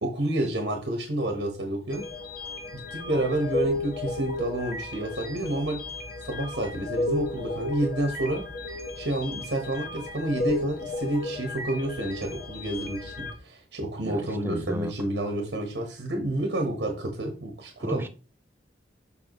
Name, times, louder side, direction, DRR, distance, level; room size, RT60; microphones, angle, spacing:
voice 1, 0.0-2.0 2.7-5.8 6.2-8.4 9.0-18.0, right 1 dB, 85° right, 1.3 m, -29 dB
sound 1, 1.9-13.3, left 2 dB, 60° left, 1.4 m, -33 dB
voice 2, 14.0-14.9 17.8-18.1, right 1 dB, 15° right, 0.5 m, -33 dB
6.9 x 5.8 x 3.1 m
head